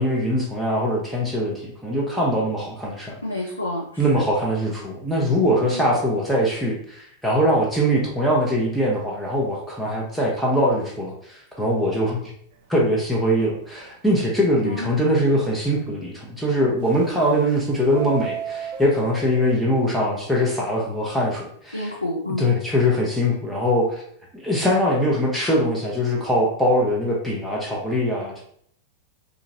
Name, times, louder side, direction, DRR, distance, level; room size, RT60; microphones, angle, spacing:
voice 1, 0.0-3.1 4.0-12.2 12.7-21.8 22.4-24.0 24.3-28.4, equal, ahead, -4 dB, 0.7 m, -22 dB
voice 2, 3.2-4.2 5.6-5.9 14.6-15.0 21.7-22.5, left 1 dB, 85° left, -2 dB, 0.4 m, -29 dB
Subway metro underground, 12.5-12.9 13.3-13.4 13.7-13.8 14.3-14.4 16.8-17.5 17.8-19.5, right 5 dB, 50° right, 0.4 m, -33 dB
2.9 x 2.5 x 2.5 m, 0.65 s
figure-of-eight pair, 90°, 0 cm